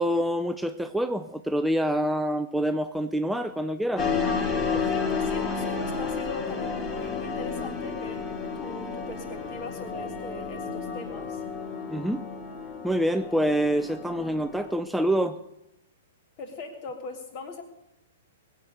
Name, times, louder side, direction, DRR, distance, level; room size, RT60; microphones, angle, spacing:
voice 1, 0.0-4.1 11.9-12.2 12.8-15.4, equal, 5° right, 8 dB, 0.5 m, -26 dB
sound 1, 4.0-14.8, left 5 dB, 25° left, 2.2 m, -31 dB
voice 2, 4.7-11.4 16.4-17.6, left 3 dB, 40° left, 4 dB, 3.2 m, -40 dB
20.5 x 8.0 x 6.8 m, 0.87 s
figure-of-eight pair, 110°, 0 cm